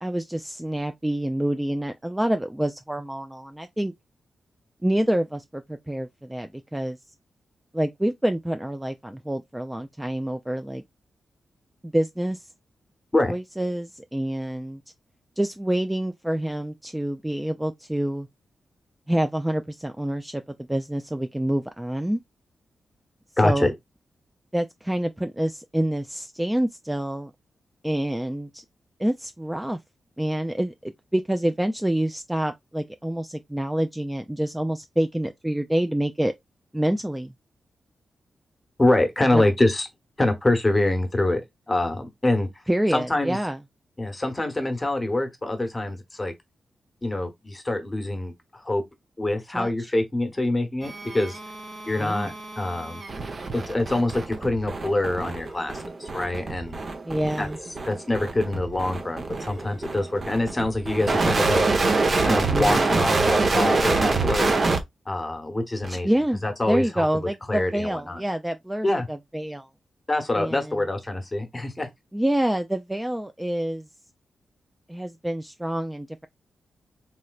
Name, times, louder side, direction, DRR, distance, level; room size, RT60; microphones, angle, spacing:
voice 1, 0.0-3.9 4.8-7.0 7.7-10.8 11.8-12.5 13.3-14.8 15.4-18.3 19.1-20.4 20.7-22.2 23.4-23.7 24.5-27.3 27.8-28.6 29.0-29.8 30.2-36.3 36.7-37.3 39.3-39.5 42.7-43.6 49.5-49.9 52.0-52.3 57.1-57.6 62.5-62.9 65.9-69.7 70.3-70.8 72.1-73.9 74.9-76.3, right 1 dB, 10° right, 0.3 m, -27 dB
voice 2, 23.4-23.7 38.8-39.9 40.2-41.4 41.7-42.5 42.9-43.4 44.0-46.3 47.0-48.3 48.6-48.8 49.2-51.4 51.9-53.0 53.5-56.8 57.4-57.5 57.9-61.6 62.3-64.6 65.1-66.1 66.4-67.0 67.5-68.2 68.8-69.1 70.1-71.9, left 2 dB, 20° left, 1.0 m, -25 dB
sound 1, 50.8-64.8 65.8-66.0, right 3 dB, 45° right, 0.8 m, -26 dB
3.1 x 3.0 x 2.3 m
cardioid pair, 75°, 0 cm